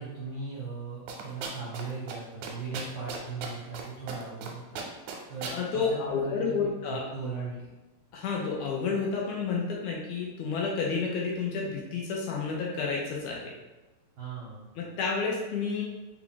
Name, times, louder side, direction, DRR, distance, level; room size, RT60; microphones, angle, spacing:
voice 1, 0.0-4.8 5.2-7.7 14.2-14.7, right 4 dB, 65° right, -9 dB, 1.2 m, -38 dB
sound 1, 1.1-2.2 2.4-3.8 4.1-4.5 4.8-5.6, right 5 dB, 85° right, 2.0 m, -36 dB
voice 2, 5.5-7.1 8.1-13.5 14.8-15.8, left 5 dB, 75° left, -2 dB, 1.8 m, -30 dB
4.9 x 2.3 x 3.7 m, 1.1 s
omnidirectional pair, 3.5 m